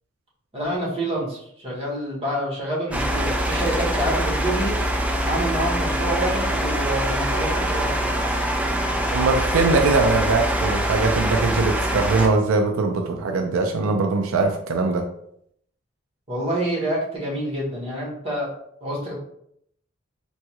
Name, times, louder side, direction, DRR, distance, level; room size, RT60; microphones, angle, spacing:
voice 1, 0.5-4.8 5.2-8.1 16.3-18.5 18.8-19.2, right 1 dB, 30° right, -5 dB, 1.3 m, -27 dB
sound 1, 2.9-12.3, right 1 dB, 5° right, 0.4 m, -24 dB
voice 2, 9.1-15.0, right 3 dB, 90° right, 3 dB, 0.4 m, -21 dB
3.5 x 2.3 x 2.9 m, 0.71 s
head